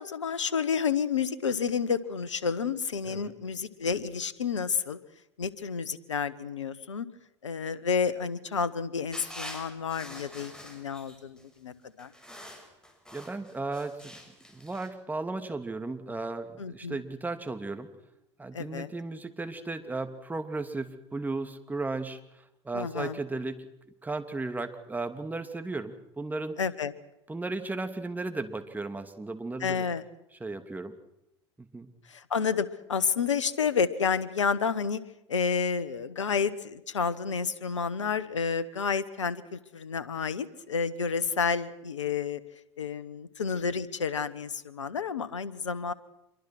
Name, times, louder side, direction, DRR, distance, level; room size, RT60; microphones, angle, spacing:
voice 1, 0.0-5.0 5.4-7.1 7.4-12.1 16.6-17.0 18.5-18.9 22.7-23.2 26.6-26.9 29.6-30.0 32.1-35.0 35.3-42.4 42.8-45.9, left 6 dB, 90° left, 16 dB, 1.5 m, -30 dB
sound 1, 9.1-11.4 12.0-14.9, equal, 5° left, 7.2 m, -45 dB
voice 2, 13.1-14.2 14.5-17.9 18.4-22.2 22.6-23.7 24.0-26.6 27.3-29.8 30.4-30.9 31.6-31.9, right 3 dB, 10° right, 7 dB, 2.9 m, -35 dB
27.0 x 23.5 x 6.2 m, 0.84 s
hypercardioid pair, 85°, 15 cm